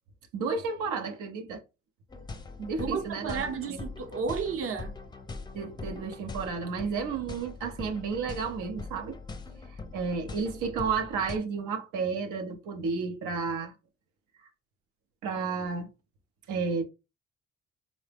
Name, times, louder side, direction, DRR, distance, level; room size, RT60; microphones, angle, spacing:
voice 1, 0.3-1.6 2.7-3.8 5.5-9.2 9.9-13.7 15.2-15.9 16.5-16.8, right 5 dB, 90° right, 0.7 m, -32 dB
sound 1, 2.1-11.4, left 3 dB, 15° left, 0.5 m, -42 dB
voice 2, 2.6-4.9, right 5 dB, 50° right, 0.7 m, -33 dB
3.9 x 2.1 x 3.3 m
cardioid pair, 90°, 30 cm